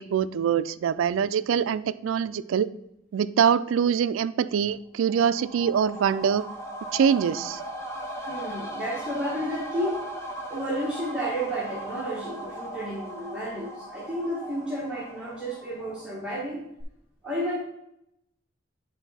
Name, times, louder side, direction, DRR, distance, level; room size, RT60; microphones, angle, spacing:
voice 1, 0.0-2.7 3.1-6.4 6.9-7.6, right 7 dB, 85° right, 16 dB, 0.3 m, -24 dB
sound 1, 5.0-16.5 16.8-16.9, right 1 dB, 15° left, 1.1 m, -38 dB
voice 2, 8.3-10.0 10.5-16.6 17.2-17.6, equal, 5° right, -8 dB, 1.3 m, -31 dB
9.1 x 3.9 x 4.1 m, 0.80 s
head